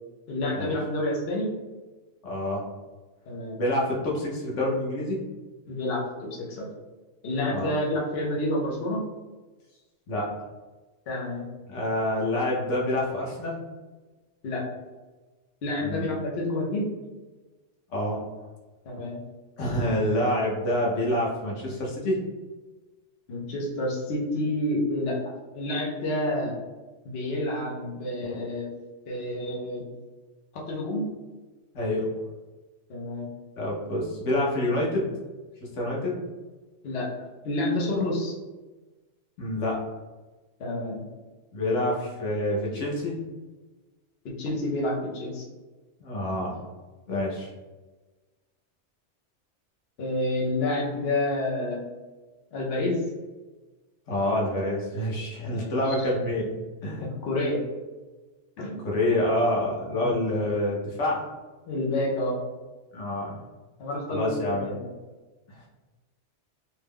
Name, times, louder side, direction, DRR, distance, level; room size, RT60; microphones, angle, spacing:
voice 1, 0.3-1.5 3.3-3.6 5.7-6.7 7.2-9.1 11.1-11.5 14.4-14.7 15.6-16.9 18.8-19.2 23.3-26.6 27.0-28.7 29.1-29.9 30.5-31.1 32.9-33.3 36.8-37.1 37.4-38.3 40.6-41.1 44.2-45.4 50.0-51.8 52.5-53.0 55.4-56.1 57.0-57.7 58.6-58.9 59.9-60.2 61.7-62.4 63.8-64.9, left 1 dB, 65° left, -2 dB, 0.9 m, -29 dB
voice 2, 2.2-2.6 3.6-5.2 7.5-7.7 10.1-10.3 11.7-13.6 15.8-16.1 17.9-18.2 19.6-22.2 31.7-32.1 33.6-35.1 35.6-36.2 39.4-39.8 41.5-43.1 46.0-46.6 47.1-47.5 54.1-56.5 56.8-57.0 58.8-61.2 62.9-63.4 64.1-64.7, left 1 dB, 90° left, -3 dB, 1.2 m, -27 dB
2.9 x 2.2 x 3.5 m, 1.2 s
omnidirectional pair, 1.2 m